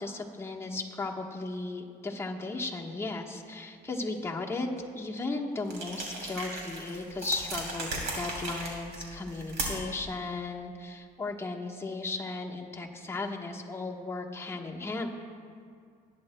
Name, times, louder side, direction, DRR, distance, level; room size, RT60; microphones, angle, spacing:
voice 1, 0.0-4.7 4.9-15.1, left 3 dB, 15° left, -1 dB, 1.1 m, -36 dB
sound 1, 5.7-10.0, right 2 dB, 75° right, 2.8 m, -37 dB
19.0 x 9.9 x 2.2 m, 2.2 s
cardioid pair, 110°, 17 cm